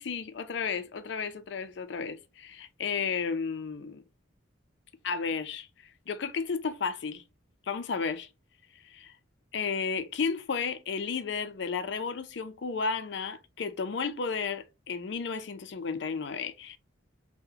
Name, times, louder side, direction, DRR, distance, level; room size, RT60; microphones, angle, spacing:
voice 1, 0.0-4.0 5.0-5.7 6.1-7.2 7.7-8.3 8.8-9.1 9.5-16.8, left 5 dB, 60° left, 0.4 m, -33 dB
3.7 x 2.1 x 2.7 m
head